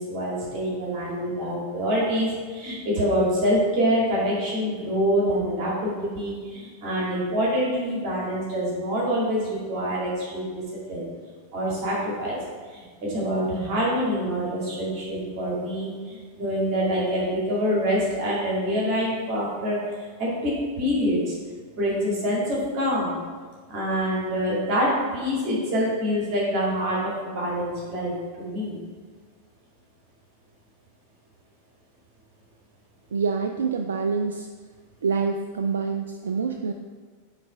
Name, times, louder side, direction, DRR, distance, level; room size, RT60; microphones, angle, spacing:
voice 1, 0.0-10.6 10.9-11.1 11.5-12.4 12.7-21.3 21.7-23.2 23.7-28.8, equal, 40° right, -5 dB, 2.2 m, -26 dB
voice 2, 33.1-34.5 35.0-36.7, right 5 dB, 65° right, 6 dB, 0.3 m, -26 dB
9.1 x 3.3 x 4.9 m, 1.5 s
figure-of-eight pair, 90°, 0 cm